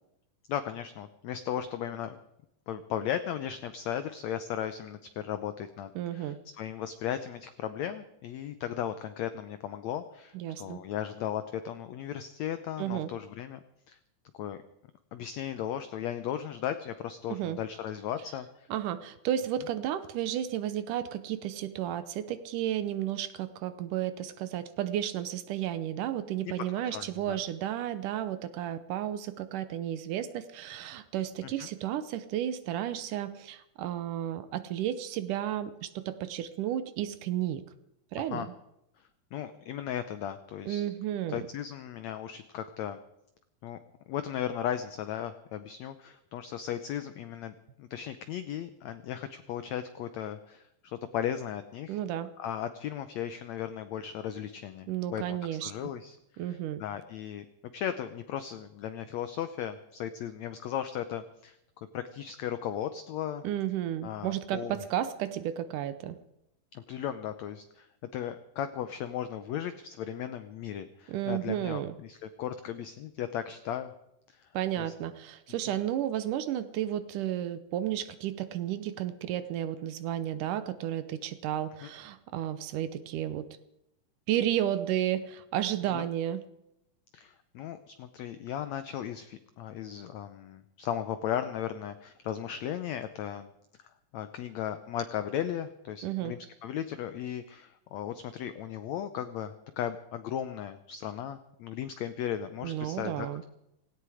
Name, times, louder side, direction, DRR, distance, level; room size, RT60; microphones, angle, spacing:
voice 1, 0.5-2.2 2.7-14.0 14.3-14.6 15.1-18.7 26.9-27.4 31.4-31.7 38.2-38.5 39.3-40.9 41.3-43.0 43.6-43.8 44.1-52.0 52.4-57.4 57.7-63.4 64.0-64.8 66.7-73.9 74.3-74.9 75.7-75.8 81.8-81.9 85.9-86.0 87.1-93.5 94.1-103.5, left 10 dB, 85° left, 11 dB, 1.5 m, -36 dB
voice 2, 6.0-6.4 10.3-10.8 12.8-13.1 17.3-17.6 18.7-37.6 38.1-38.5 40.7-41.4 51.9-52.3 54.9-55.7 56.4-56.8 63.4-66.2 71.1-71.9 74.5-83.5 84.3-86.4 96.0-96.3 102.6-103.4, right 11 dB, 75° right, 13 dB, 2.1 m, -32 dB
17.5 x 16.5 x 4.9 m, 0.84 s
omnidirectional pair, 4.1 m